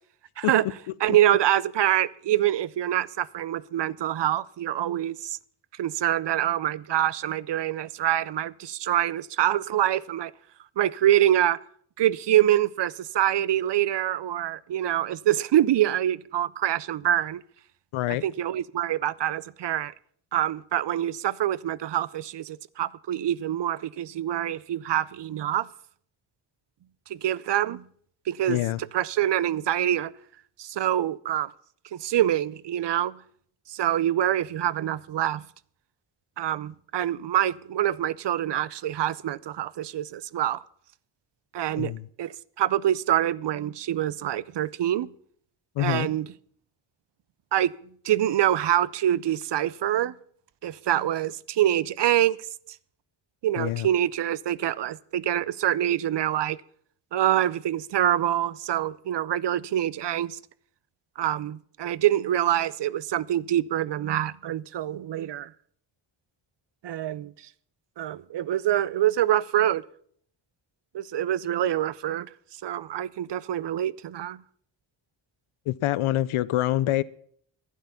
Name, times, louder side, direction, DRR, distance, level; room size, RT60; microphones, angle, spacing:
voice 1, 1.0-5.4 5.8-10.3 10.8-11.6 12.0-17.4 18.2-19.9 20.3-25.7 27.1-27.8 28.3-28.6 28.9-30.1 30.6-31.5 31.9-33.2 33.7-35.4 36.4-40.6 41.5-41.9 42.2-45.1 45.8-46.3 47.5-47.7 48.0-50.1 50.6-52.4 53.4-56.6 57.1-60.4 61.2-65.5 66.8-67.3 68.0-69.8 70.9-72.3 72.6-74.4, right 12 dB, 60° right, 0.6 m, -25 dB
voice 2, 17.9-18.2 28.5-28.8 41.8-42.0 45.8-46.1 53.6-53.9 75.7-77.0, left 15 dB, 90° left, 0.6 m, -25 dB
11.5 x 9.3 x 6.9 m
cardioid pair, 50°, 49 cm